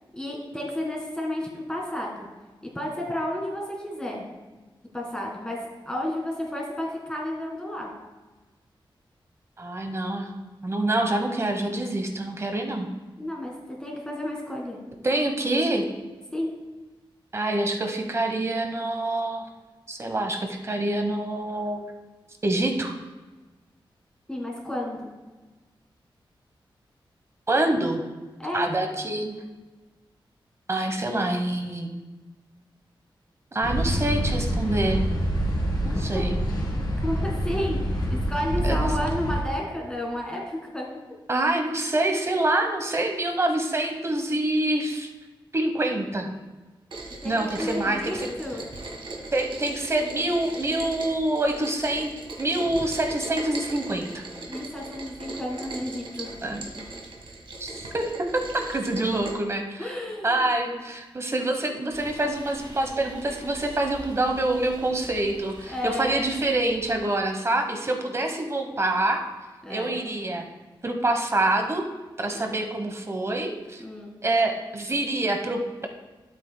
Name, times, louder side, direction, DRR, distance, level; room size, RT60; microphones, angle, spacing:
voice 1, 0.1-2.3 2.7-4.2 4.9-5.6 5.8-7.9 13.2-14.8 16.3-16.5 24.3-25.1 28.4-28.7 35.9-36.2 37.0-40.9 47.2-48.6 54.5-56.4 59.8-60.5 65.6-66.1 69.6-70.0 72.3-72.6 73.8-74.1, left 1 dB, 10° left, -1 dB, 1.7 m, -32 dB
voice 2, 9.6-10.3 10.6-12.9 15.0-15.9 17.3-19.5 19.9-21.9 22.4-22.9 27.5-28.0 28.5-29.4 30.7-31.9 33.5-35.0 35.8-36.4 38.6-38.9 41.3-45.1 45.5-46.3 47.2-48.3 49.3-52.1 52.4-54.2 56.4-56.7 57.6-60.0 60.2-69.2 69.7-70.5 70.8-71.8 72.2-73.8 74.2-75.9, right 2 dB, 30° right, 4 dB, 1.0 m, -26 dB
sound 1, 33.6-39.4, equal, 45° left, 2.5 m, -26 dB
Rain, 46.9-59.3, right 2 dB, 75° right, 1.5 m, -39 dB
sound 2, 61.9-67.0, right 1 dB, 55° right, 2.6 m, -45 dB
12.5 x 8.0 x 2.2 m, 1.2 s
wide cardioid pair, 110°, 9 cm